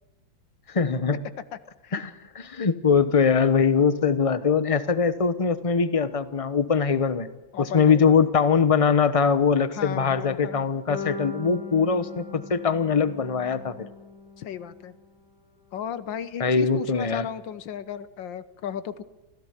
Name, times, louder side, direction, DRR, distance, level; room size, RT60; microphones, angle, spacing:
voice 1, 0.7-1.2 1.9-7.3 7.6-13.9 16.4-17.3, left 5 dB, 30° left, 13 dB, 0.7 m, -22 dB
voice 2, 7.5-8.1 9.7-10.7 14.4-14.9 15.7-19.0, left 9 dB, 70° left, 15 dB, 1.6 m, -35 dB
sound 1, 10.9-15.0, left 4 dB, 50° left, 3.9 m, -39 dB
25.0 x 16.5 x 8.2 m, 1.1 s
omnidirectional pair, 2.2 m